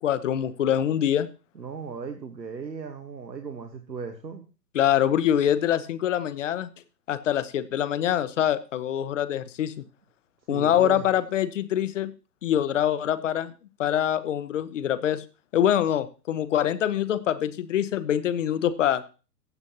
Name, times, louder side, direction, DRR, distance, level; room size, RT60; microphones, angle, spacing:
voice 1, 0.0-1.3 4.7-6.7 7.1-9.7 10.5-12.1 12.4-13.5 13.8-15.2 15.5-19.0, left 10 dB, 50° left, 15 dB, 1.0 m, -24 dB
voice 2, 1.5-4.5 10.5-11.1, right 6 dB, 85° right, 6 dB, 1.3 m, -37 dB
15.0 x 8.3 x 2.8 m, 0.34 s
figure-of-eight pair, 120°, 49 cm